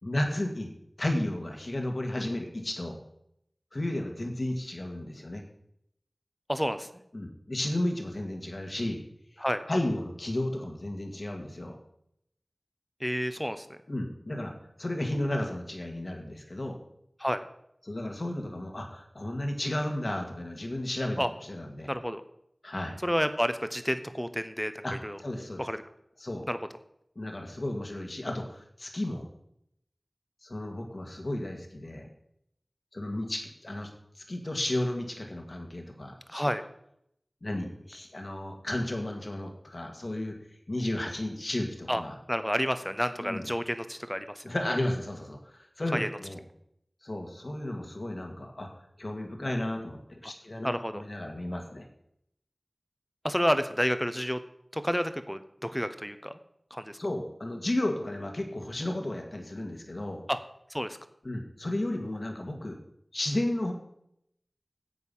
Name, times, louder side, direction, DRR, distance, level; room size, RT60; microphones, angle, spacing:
voice 1, 0.0-0.7 1.0-3.0 3.7-5.4 7.1-9.0 9.3-11.8 13.9-14.5 14.8-16.8 17.8-21.9 22.6-23.0 24.8-25.7 26.2-26.4 27.2-29.3 30.4-32.1 32.9-33.9 34.2-36.4 37.4-40.4 40.7-42.2 43.2-43.4 44.4-46.4 47.0-48.7 49.0-51.9 57.0-60.2 61.2-62.8 63.1-63.7, left 1 dB, 60° left, 3 dB, 1.9 m, -33 dB
voice 2, 6.5-6.9 9.4-9.7 13.0-13.8 17.2-17.4 21.2-21.3 21.9-22.2 23.0-25.2 25.6-25.8 26.5-26.6 36.3-36.6 41.9-42.0 42.3-44.4 45.9-46.1 50.2-50.3 50.6-51.0 53.2-54.4 54.7-56.3 56.7-57.0 60.3-60.4 60.7-61.0, equal, 5° left, 10 dB, 0.9 m, -30 dB
11.0 x 8.1 x 5.6 m, 0.75 s
wide cardioid pair, 50°, 0 cm